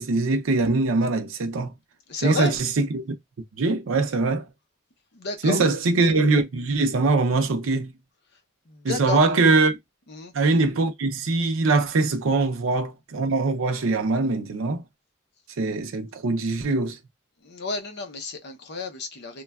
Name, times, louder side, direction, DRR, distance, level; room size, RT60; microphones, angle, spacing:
voice 1, 0.0-1.7 2.2-3.1 3.6-4.5 5.4-8.0 8.8-9.8 10.3-14.8 15.6-17.0, right 3 dB, 85° right, 0.5 m, -22 dB
voice 2, 2.1-2.5 5.1-5.6 8.7-9.2 10.1-10.3 17.4-19.4, left 3 dB, 55° left, 0.6 m, -31 dB
3.0 x 2.2 x 2.3 m
head